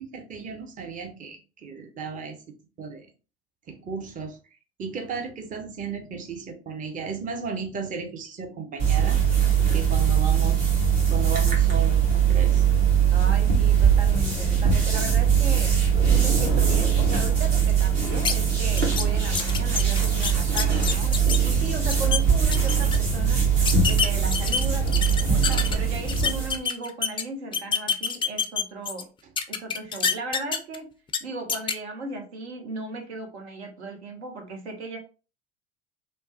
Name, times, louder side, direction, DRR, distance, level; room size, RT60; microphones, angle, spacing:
voice 1, 0.0-2.4 2.8-3.1 3.7-4.4 4.8-9.2 9.7-10.7 11.1-12.7, right 5 dB, 25° right, 5 dB, 0.7 m, -34 dB
sound 1, 8.8-26.6, right 7 dB, 50° right, 1.6 m, -21 dB
voice 2, 13.1-15.8 16.1-23.5 23.8-29.1 29.5-30.9 31.2-35.0, right 2 dB, 75° right, 3 dB, 1.0 m, -36 dB
sound 2, 18.2-18.3 18.8-19.0 19.3-21.4 21.8-22.2 22.5-23.0 23.6-25.7 26.1-27.2 27.5-29.0 29.4-30.8 31.1-31.2 31.5-31.7, left 6 dB, 15° left, 0.3 m, -26 dB
3.1 x 2.1 x 2.8 m, 0.33 s
figure-of-eight pair, 70°, 33 cm